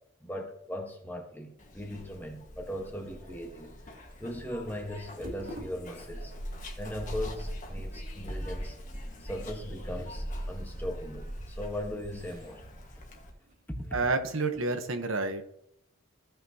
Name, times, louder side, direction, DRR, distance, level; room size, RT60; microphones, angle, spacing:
voice 1, 0.2-3.7 4.2-6.3 6.8-8.8 9.2-12.7 13.7-14.0, equal, 10° left, 2 dB, 1.3 m, -38 dB
Zipper (clothing), 1.6-13.3, equal, 40° left, 1.6 m, -41 dB
sound 1, 3.3-14.5, equal, 40° right, 2.1 m, -52 dB
voice 2, 13.9-15.4, right 3 dB, 75° right, 7 dB, 1.1 m, -29 dB
15.5 x 5.9 x 2.9 m, 0.74 s
head